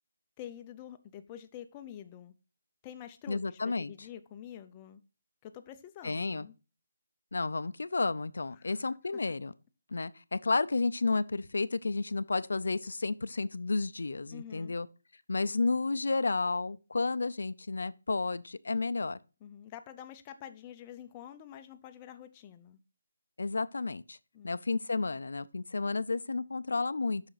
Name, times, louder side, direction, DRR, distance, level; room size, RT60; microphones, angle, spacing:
voice 1, 0.4-2.3 2.8-5.0 5.4-6.5 8.5-8.8 14.3-14.8 19.4-22.8 24.3-24.6, left 10 dB, 15° left, 0.4 m, -47 dB
voice 2, 3.3-3.9 6.0-6.5 7.3-9.5 9.9-14.9 15.3-19.2 23.4-24.2 24.4-27.2, left 3 dB, 75° left, 0.4 m, -31 dB
7.9 x 5.7 x 3.9 m
hypercardioid pair, 175°, 0 cm